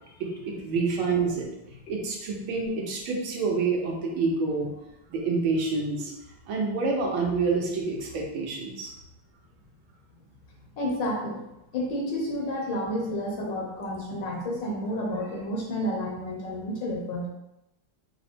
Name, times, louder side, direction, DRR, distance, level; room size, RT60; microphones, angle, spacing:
voice 1, 0.2-1.5 1.9-4.7 5.1-6.1 6.5-8.9, right 4 dB, 80° right, -1 dB, 1.6 m, -27 dB
voice 2, 10.8-11.4 11.7-17.3, equal, 65° left, -2 dB, 1.3 m, -30 dB
4.7 x 2.1 x 4.2 m, 0.92 s
omnidirectional pair, 2.4 m